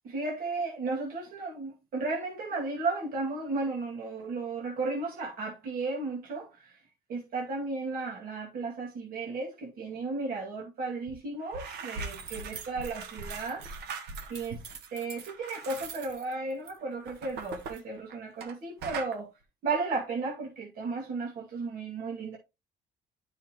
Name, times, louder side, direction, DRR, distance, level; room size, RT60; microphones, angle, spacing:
voice 1, 0.0-6.8 7.1-13.6 14.3-14.6 14.9-19.3 19.6-22.4, right 3 dB, 55° right, 2.2 m, -34 dB
sound 1, 11.1-11.2 11.4-18.5 18.8-19.2, right 5 dB, 75° right, 1.3 m, -41 dB
9.8 x 5.5 x 3.0 m
cardioid pair, 110°, 17 cm